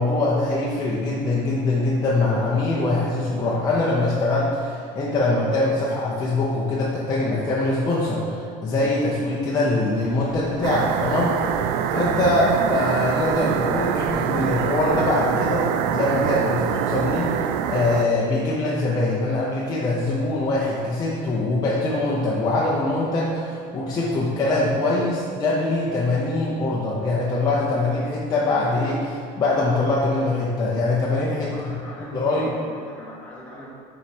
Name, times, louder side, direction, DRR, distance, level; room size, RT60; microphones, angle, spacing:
voice 1, 0.0-11.6 11.9-31.7 32.1-32.5, left 2 dB, 25° left, -6 dB, 0.8 m, -23 dB
sound 1, 9.9-15.1, equal, 10° right, 1.7 m, -40 dB
sound 2, 10.6-18.1, right 8 dB, 85° right, 0.4 m, -24 dB
voice 2, 31.4-33.7, left 1 dB, 10° left, -7 dB, 1.6 m, -40 dB
7.1 x 4.7 x 4.4 m, 2.3 s
cardioid pair, 165°, 15 cm